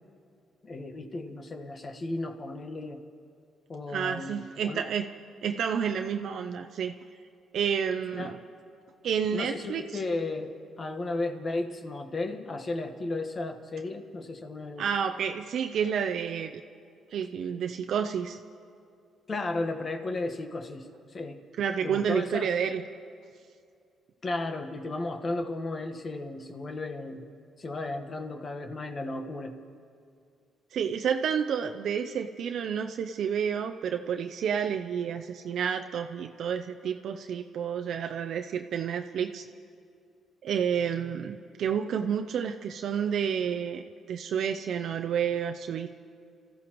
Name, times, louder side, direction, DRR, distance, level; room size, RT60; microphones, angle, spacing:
voice 1, 0.6-3.0 3.7-4.8 8.2-8.4 9.3-10.5 10.8-14.8 19.3-21.4 21.8-22.5 24.2-27.3 27.6-29.6, left 2 dB, 35° left, 6 dB, 1.3 m, -34 dB
voice 2, 3.9-5.1 5.4-6.9 7.5-8.4 9.0-9.8 14.8-16.5 17.1-18.4 21.6-22.8 30.7-39.4 40.4-45.9, right 7 dB, 70° right, 5 dB, 0.5 m, -30 dB
29.5 x 14.5 x 3.1 m, 2.3 s
cardioid pair, 90°, 0 cm